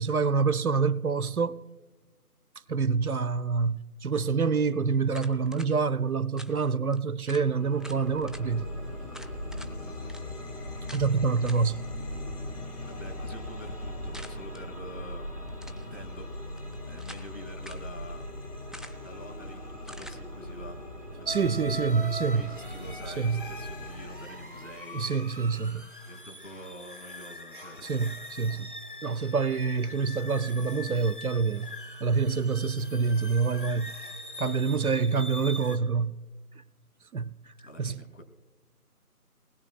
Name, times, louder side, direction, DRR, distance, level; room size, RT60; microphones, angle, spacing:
voice 1, 0.0-1.6 2.7-8.7 10.9-11.8 21.3-22.4 23.2-23.4 24.9-25.9 27.8-28.7 29.0-31.7 32.0-33.9 34.4-36.2 37.1-37.3 37.8-38.0, right 5 dB, 65° right, 0.5 m, -26 dB
sound 1, 5.1-5.7 6.4-6.6 6.9-7.0 7.3-7.5 7.8-8.4 9.1-9.7 10.1-10.2 10.9-11.1 11.5-11.7 14.1-14.6 15.5-15.9 16.6-17.3 17.6-17.9 18.7-19.1 19.9-20.2, equal, ahead, 0.4 m, -47 dB
sound 2, 7.3-24.7, left 1 dB, 80° left, 5.8 m, -39 dB
voice 2, 9.8-10.2 12.8-16.3 16.7-18.3 19.0-20.8 21.2-25.1 26.1-28.0 34.6-34.9 37.6-38.2, equal, 55° left, 2.5 m, -47 dB
sound 3, 21.3-35.8, left 2 dB, 35° left, 0.9 m, -43 dB
30.0 x 20.0 x 2.2 m
figure-of-eight pair, 175°, 47 cm